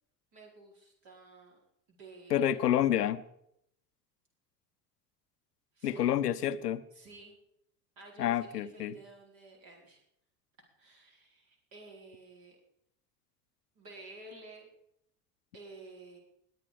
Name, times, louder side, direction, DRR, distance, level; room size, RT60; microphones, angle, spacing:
voice 1, 0.3-1.6 1.9-2.6 5.7-6.1 6.9-7.3 8.0-10.0 10.8-12.6 13.7-14.7 15.5-16.2, right 2 dB, 45° right, 0 dB, 4.6 m, -52 dB
voice 2, 2.3-3.2 5.8-6.8 8.2-8.9, left 11 dB, 75° left, 14 dB, 0.8 m, -28 dB
21.0 x 9.5 x 5.0 m, 0.75 s
figure-of-eight pair, 60°, 48 cm